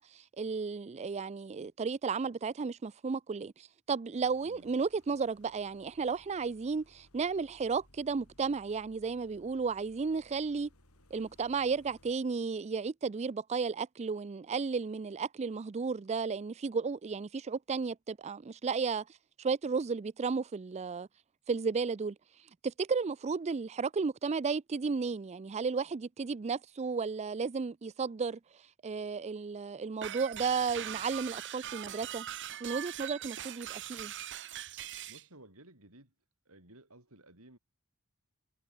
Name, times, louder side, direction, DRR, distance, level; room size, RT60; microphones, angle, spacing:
voice 1, 0.0-10.7 11.1-19.0 19.4-21.1 21.5-22.2 22.6-28.4 28.8-32.3 32.6-34.1, right 5 dB, 30° right, 0.4 m, -33 dB
sound 1, 4.2-12.1, left 1 dB, 80° left, 4.8 m, -64 dB
voice 2, 4.4-4.7 35.1-36.1 36.5-37.6, right 1 dB, 70° right, 6.9 m, -56 dB
sound 2, 30.0-35.2, right 11 dB, 55° right, 1.1 m, -41 dB
head